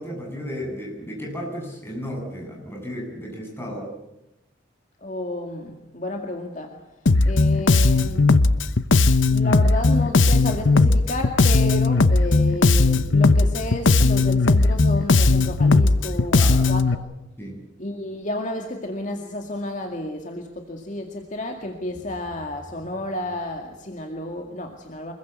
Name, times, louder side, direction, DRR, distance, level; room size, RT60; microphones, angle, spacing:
voice 1, 0.0-3.9 16.4-16.6 17.4-17.6, equal, 10° left, -1 dB, 7.6 m, -34 dB
voice 2, 5.0-6.9 7.3-8.3 9.3-17.0 17.8-25.1, left 1 dB, 40° left, 3 dB, 2.2 m, -31 dB
Bass guitar, 7.1-16.9, left 3 dB, 80° left, 0.9 m, -17 dB
26.0 x 21.5 x 8.4 m, 0.90 s
head